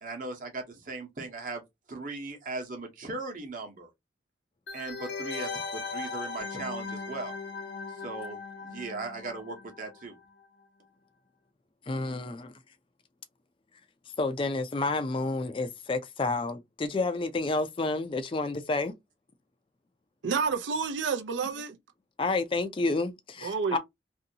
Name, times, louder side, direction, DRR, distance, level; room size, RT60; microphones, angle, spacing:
voice 1, 0.0-1.6 1.9-3.9 4.7-7.4 7.9-8.4 8.6-10.2 15.2-15.3, right 3 dB, 45° right, 0.9 m, -38 dB
sound 1, 4.7-10.1 10.4-10.5, left 4 dB, 75° left, 0.8 m, -38 dB
voice 2, 11.9-12.5 14.2-18.9 22.2-23.8, left 3 dB, 30° left, 0.4 m, -30 dB
voice 3, 20.2-21.8 23.4-23.8, right 5 dB, 90° right, 0.5 m, -29 dB
2.7 x 2.7 x 2.7 m
head